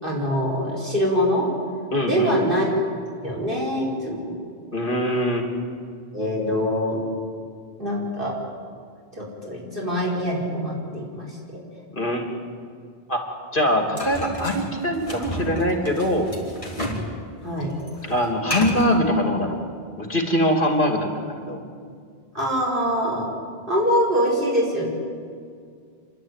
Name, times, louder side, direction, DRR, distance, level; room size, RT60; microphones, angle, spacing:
voice 1, 0.0-1.5 2.0-2.7 3.2-4.3 6.1-7.0 7.8-8.3 9.2-11.4 17.4-17.7 22.3-23.3 23.7-24.9, equal, 55° right, -3 dB, 5.0 m, -24 dB
voice 2, 1.9-2.4 4.7-5.5 11.9-12.3 13.1-13.2 13.5-16.3 18.0-19.6 20.0-21.6, equal, 55° left, 3 dB, 3.1 m, -22 dB
sound 1, 14.0-17.1 17.4-19.0, left 1 dB, 30° left, 3.7 m, -31 dB
28.5 x 12.0 x 9.4 m, 2.1 s
omnidirectional pair, 1.0 m